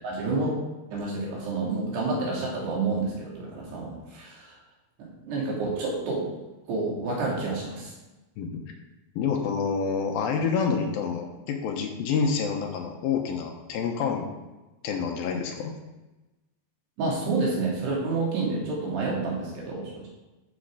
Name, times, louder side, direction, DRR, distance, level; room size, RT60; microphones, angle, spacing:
voice 1, 0.0-0.5 0.9-4.6 5.0-6.2 6.7-7.9 17.0-20.1, right 3 dB, 85° right, -4 dB, 4.9 m, -29 dB
voice 2, 9.2-14.3 14.8-15.8, left 6 dB, 75° left, 3 dB, 2.5 m, -28 dB
12.5 x 6.4 x 4.9 m, 1.1 s
omnidirectional pair, 4.6 m